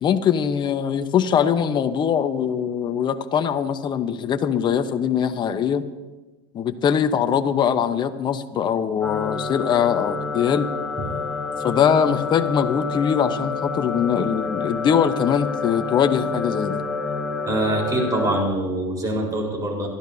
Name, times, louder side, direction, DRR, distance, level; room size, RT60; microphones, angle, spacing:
voice 1, 0.0-5.8 6.5-10.7 11.6-16.8, left 8 dB, 35° left, 8 dB, 1.0 m, -22 dB
sound 1, 9.0-18.4, left 4 dB, ahead, 1.5 m, -28 dB
voice 2, 17.4-19.9, right 1 dB, 25° right, 0 dB, 4.4 m, -24 dB
24.5 x 12.5 x 2.8 m, 1.2 s
supercardioid pair, 110°, 13 cm